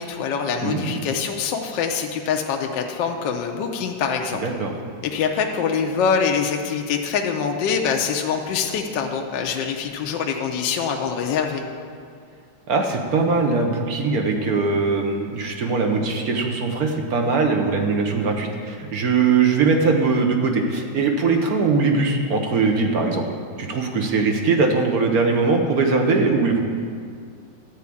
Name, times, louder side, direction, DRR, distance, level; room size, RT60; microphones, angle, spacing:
voice 1, 0.0-4.4 5.0-11.6, left 6 dB, 70° left, 3 dB, 1.3 m, -24 dB
voice 2, 0.6-1.0 4.4-4.7 12.7-23.2 23.6-26.6, right 4 dB, 55° right, 3 dB, 1.3 m, -21 dB
12.0 x 4.7 x 8.4 m, 2.2 s
omnidirectional pair, 2.1 m